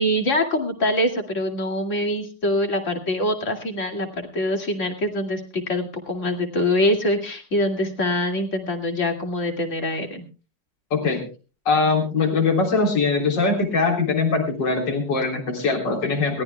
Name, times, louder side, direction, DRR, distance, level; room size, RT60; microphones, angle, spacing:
voice 1, 0.0-10.3, left 1 dB, 35° left, 4 dB, 2.6 m, -24 dB
voice 2, 10.9-11.2 11.7-16.4, left 4 dB, 55° left, 4 dB, 4.1 m, -22 dB
22.0 x 18.0 x 2.2 m, 0.34 s
omnidirectional pair, 2.4 m